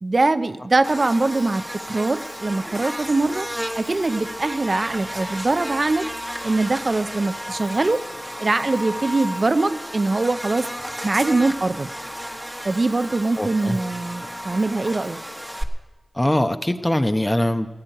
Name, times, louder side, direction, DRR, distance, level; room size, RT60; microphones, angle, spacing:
voice 1, 0.0-3.5 3.7-6.0 6.4-8.0 8.4-10.6 11.0-11.9 12.6-15.2, right 3 dB, 55° right, 10 dB, 0.6 m, -22 dB
Buzz, 0.8-15.6, equal, 5° right, 1.5 m, -33 dB
voice 2, 13.4-13.8 16.1-17.7, left 1 dB, 20° left, 7 dB, 1.0 m, -22 dB
16.0 x 8.7 x 9.1 m, 1.2 s
cardioid pair, 45°, 0 cm